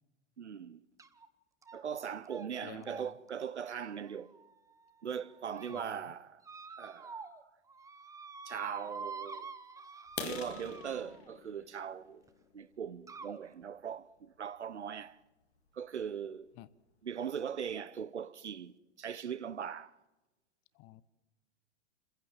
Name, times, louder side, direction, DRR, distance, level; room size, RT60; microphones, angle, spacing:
voice 1, 0.4-0.8 1.7-4.3 5.0-6.4 6.8-7.2 8.4-9.5 10.2-12.2 12.5-15.2 15.7-16.5 17.0-19.9, right 8 dB, 75° right, 1.0 m, -40 dB
sound 1, 1.0-1.3 1.6-2.0 2.3-2.5 2.8-4.8 5.3-5.9 6.4-7.4 7.7-11.3 12.3-12.4 13.1-13.4, right 4 dB, 10° right, 1.1 m, -47 dB
voice 2, 2.6-3.1 5.7-5.8 16.6-16.7 20.8-21.0, left 17 dB, 35° left, 1.0 m, -50 dB
sound 2, 10.1-13.8 14.4-14.5 15.0-15.1 15.5-15.7 16.0-16.1 16.6-16.7 16.9-17.4, left 8 dB, 60° left, 2.3 m, -46 dB
29.5 x 15.5 x 7.6 m
figure-of-eight pair, 95°, 35 cm